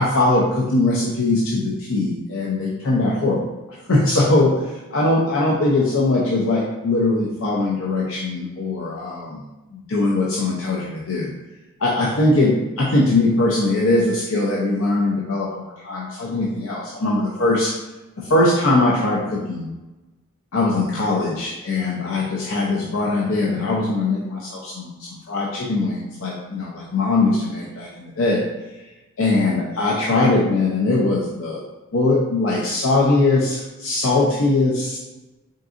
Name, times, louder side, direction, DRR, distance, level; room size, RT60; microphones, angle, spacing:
voice 1, 0.0-3.5 3.9-9.4 9.7-11.3 11.8-17.7 18.2-19.7 20.5-24.9 25.3-28.4 29.2-31.6 31.9-35.0, left 2 dB, 65° left, -4 dB, 0.6 m, -21 dB
3.9 x 3.6 x 2.5 m, 1.1 s
head